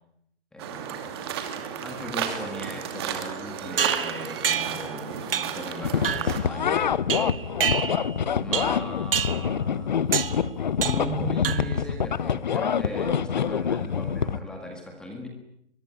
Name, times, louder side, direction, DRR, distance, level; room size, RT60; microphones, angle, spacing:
voice 1, 0.5-1.5 1.8-6.9 8.4-10.4 10.8-15.3, left 1 dB, ahead, 2 dB, 1.7 m, -37 dB
sound 1, 0.6-6.4, right 8 dB, 20° right, 2.5 m, -33 dB
sound 2, 3.8-4.9 5.3-5.7 6.0-6.4 7.1-8.2 8.5-8.8 9.1-9.5 10.1-10.4 10.8-11.1 11.4-11.9, right 7 dB, 50° right, 1.6 m, -28 dB
sound 3, 5.8-14.4, left 7 dB, 40° left, 1.1 m, -26 dB
23.5 x 23.0 x 10.0 m, 0.75 s
hypercardioid pair, 175°, 35 cm